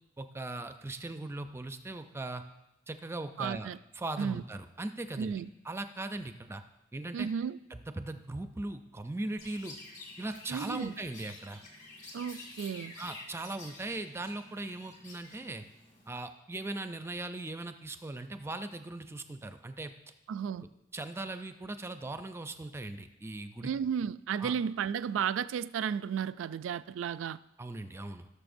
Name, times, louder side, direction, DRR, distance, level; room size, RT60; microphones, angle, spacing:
voice 1, 0.2-2.4 2.9-5.3 5.6-6.6 6.9-7.3 7.7-9.8 10.2-11.6 13.0-15.6 16.1-19.9 20.9-23.7 24.4-24.5 27.6-28.3, right 2 dB, 15° right, 9 dB, 0.4 m, -39 dB
voice 2, 3.4-3.8 4.2-4.4 5.2-5.5 7.1-7.6 10.5-10.9 12.1-12.9 20.3-20.7 23.6-27.4, right 7 dB, 85° right, 15 dB, 0.3 m, -33 dB
Chirp tweet, 9.4-16.2, left 2 dB, 45° left, 2.0 m, -50 dB
17.0 x 6.6 x 2.6 m, 0.92 s
head